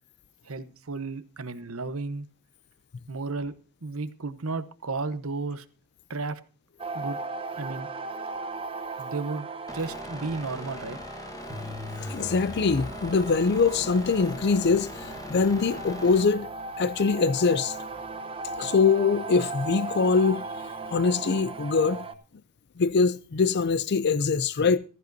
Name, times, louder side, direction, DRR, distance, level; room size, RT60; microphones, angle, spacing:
voice 1, 0.5-2.3 3.1-3.5 3.8-5.6 6.1-6.4 6.9-7.2 7.6-7.9 9.0-11.0, right 3 dB, 70° right, 1.0 m, -33 dB
sound 1, 6.8-22.1, right 3 dB, 25° right, 1.1 m, -37 dB
sound 2, 9.7-16.2, left 1 dB, 15° left, 1.3 m, -41 dB
voice 2, 12.0-16.5 16.8-17.8 18.6-20.4 20.9-22.0 22.8-24.8, left 4 dB, 50° left, 0.5 m, -23 dB
15.0 x 14.5 x 2.7 m
head